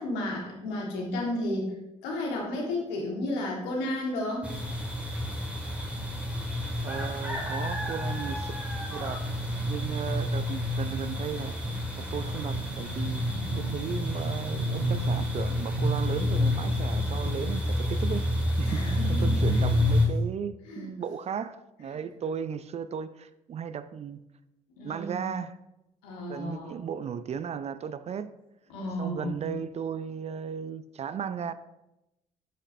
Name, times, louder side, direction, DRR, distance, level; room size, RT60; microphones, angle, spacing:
voice 1, 0.0-1.7 2.0-4.5 18.6-19.6 20.7-20.9 24.8-25.3 26.0-26.7 28.7-29.4, left 1 dB, 75° left, 1.6 m, -32 dB
sound 1, 4.4-20.1, left 1 dB, 5° right, 1.8 m, -29 dB
voice 2, 6.8-8.5 8.9-9.2 9.7-11.6 12.0-13.2 13.5-18.3 18.6-24.2 24.8-25.6 26.3-28.3 29.0-31.5, right 7 dB, 40° right, 0.4 m, -35 dB
7.0 x 5.8 x 2.6 m
hypercardioid pair, 50°, 18 cm